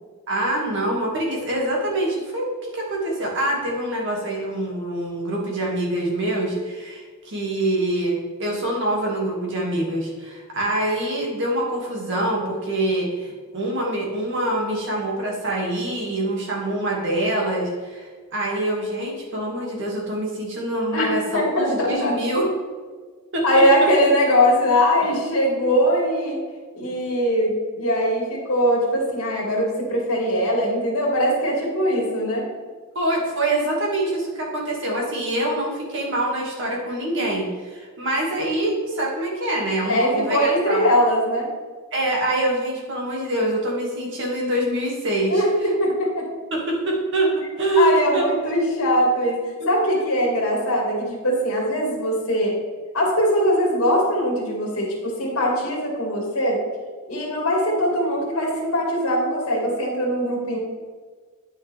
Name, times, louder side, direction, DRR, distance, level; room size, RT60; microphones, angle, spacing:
voice 1, 0.3-22.5 23.3-23.4 32.9-40.8 41.9-45.4 46.5-48.2 49.6-49.7, right 1 dB, 60° right, -2 dB, 2.2 m, -25 dB
voice 2, 21.3-22.2 23.4-26.4 26.7-32.5 39.9-41.5 45.3-46.3 47.8-52.6 52.9-56.6 57.1-60.6, equal, 70° left, -3 dB, 2.1 m, -21 dB
9.4 x 6.3 x 3.4 m, 1.5 s
head